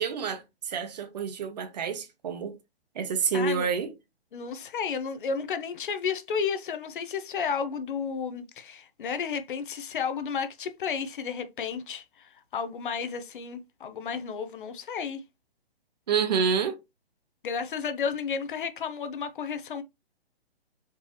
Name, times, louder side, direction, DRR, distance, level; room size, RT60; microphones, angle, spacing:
voice 1, 0.0-2.5 3.0-3.9 16.1-16.8, right 6 dB, 40° right, 0.8 m, -28 dB
voice 2, 3.3-3.7 4.3-15.2 17.4-19.8, left 6 dB, 55° left, 0.7 m, -32 dB
4.5 x 3.0 x 2.9 m
hypercardioid pair, 155°, 31 cm